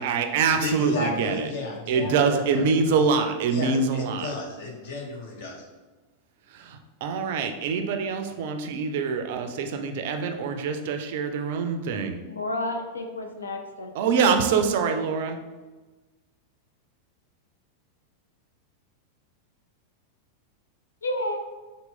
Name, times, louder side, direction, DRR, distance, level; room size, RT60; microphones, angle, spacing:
voice 1, 0.0-1.5 1.9-4.3 6.5-12.2 13.9-15.4, right 5 dB, 50° right, 6 dB, 0.4 m, -25 dB
voice 2, 0.6-2.4 2.9-3.0 3.5-5.6, left 2 dB, 55° left, 0 dB, 0.8 m, -32 dB
voice 3, 12.3-13.9 21.0-21.4, left 1 dB, 75° left, 4 dB, 0.4 m, -30 dB
4.2 x 2.1 x 3.6 m, 1.2 s
figure-of-eight pair, 90°, 0 cm